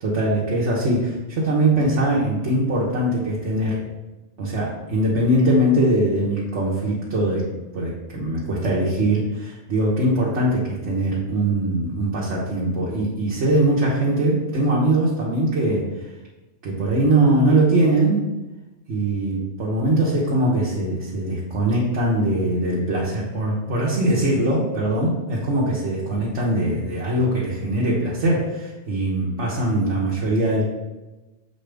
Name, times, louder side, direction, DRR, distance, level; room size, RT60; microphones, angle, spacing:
voice 1, 0.0-3.8 4.4-15.8 16.6-18.2 18.9-30.7, right 1 dB, 85° right, -6 dB, 1.4 m, -21 dB
6.5 x 4.8 x 3.4 m, 1.1 s
omnidirectional pair, 1.2 m